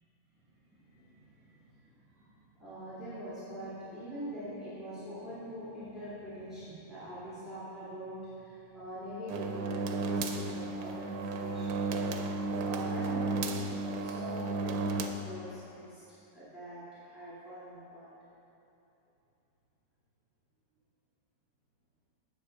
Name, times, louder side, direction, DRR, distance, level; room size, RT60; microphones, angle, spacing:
voice 1, 0.7-2.3 2.6-11.8 12.6-16.0 16.3-18.1, equal, 10° right, -13 dB, 2.1 m, -44 dB
sound 1, 9.3-15.1, right 3 dB, 70° right, 1.0 m, -33 dB
9.9 x 4.2 x 6.4 m, 2.9 s
omnidirectional pair, 1.8 m